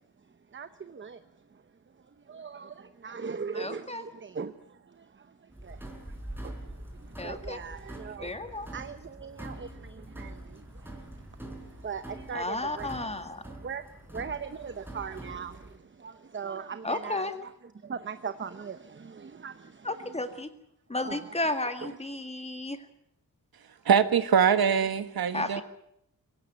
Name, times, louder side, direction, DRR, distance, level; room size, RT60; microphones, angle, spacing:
voice 1, 0.5-1.2 2.3-4.5 5.0-5.1 5.6-5.8 6.1-6.2 6.4-6.7 7.1-8.5 8.7-10.6 10.9-11.0 11.8-13.1 13.4-13.8 14.1-17.5 17.8-19.9 21.0-21.2, right 6 dB, 35° right, 0.8 m, -39 dB
voice 2, 3.5-4.0 7.2-7.6 8.2-8.7 12.3-13.4 16.8-17.3 19.8-20.5 20.9-22.8 25.3-25.6, left 2 dB, 15° left, 2.0 m, -33 dB
sound 1, 5.5-15.8, right 1 dB, 5° right, 4.0 m, -44 dB
voice 3, 23.8-25.6, right 7 dB, 90° right, 1.5 m, -23 dB
23.5 x 17.0 x 9.5 m
wide cardioid pair, 150°, 35 cm